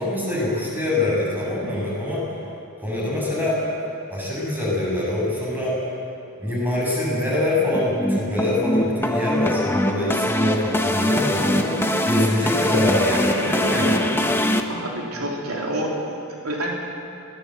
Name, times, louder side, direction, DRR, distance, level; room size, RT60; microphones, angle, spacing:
voice 1, 0.0-2.2 2.8-3.6 4.1-5.7 6.4-11.8 12.0-14.4, left 1 dB, 10° right, -5 dB, 7.6 m, -24 dB
sound 1, 7.7-14.6, left 1 dB, 10° left, 1.2 m, -22 dB
voice 2, 14.7-16.7, right 1 dB, 80° right, -1 dB, 3.3 m, -28 dB
24.0 x 18.5 x 8.0 m, 2.7 s
head